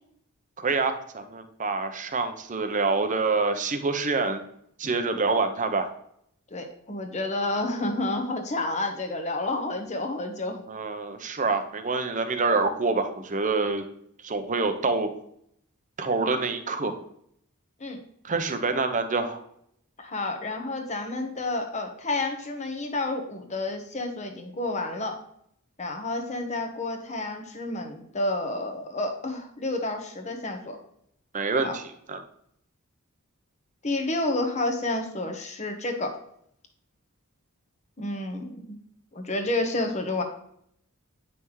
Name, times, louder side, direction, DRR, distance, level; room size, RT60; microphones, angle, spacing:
voice 1, 0.6-4.4 4.8-5.9 10.7-13.8 14.2-15.1 16.0-17.0 18.2-19.4 31.3-31.8 32.1-32.2, right 3 dB, 35° right, 7 dB, 0.8 m, -26 dB
voice 2, 6.5-10.6 17.8-18.0 20.0-25.2 25.8-30.8 31.6-31.8 33.8-36.1 38.0-38.8 39.1-40.2, left 2 dB, 30° left, 4 dB, 1.1 m, -30 dB
9.1 x 5.6 x 3.2 m, 0.71 s
head